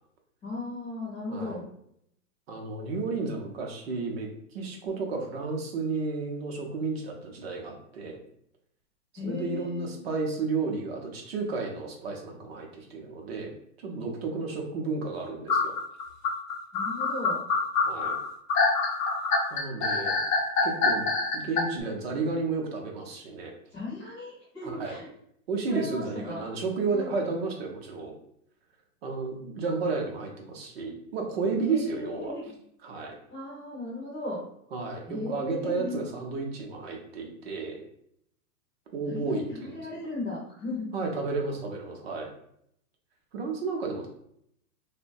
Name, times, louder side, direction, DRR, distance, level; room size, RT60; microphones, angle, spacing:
voice 1, 0.4-1.7 9.2-9.9 16.7-17.4 23.7-25.1 25.7-26.4 26.9-27.1 31.7-32.4 33.3-34.4 35.1-36.0 39.1-40.9, left 2 dB, 10° left, -7 dB, 0.5 m, -36 dB
voice 2, 2.5-8.2 9.2-13.5 13.8-15.7 17.8-18.2 19.5-20.2 20.6-21.0 21.3-23.5 24.6-25.0 25.5-28.1 29.0-32.3 32.8-33.2 34.7-37.8 38.9-39.8 40.9-42.3 43.3-44.1, right 4 dB, 45° right, 1 dB, 0.6 m, -32 dB
sound 1, 15.5-21.6, left 4 dB, 60° left, 0.6 m, -25 dB
3.1 x 2.1 x 2.6 m, 0.71 s
hypercardioid pair, 160°, 45 cm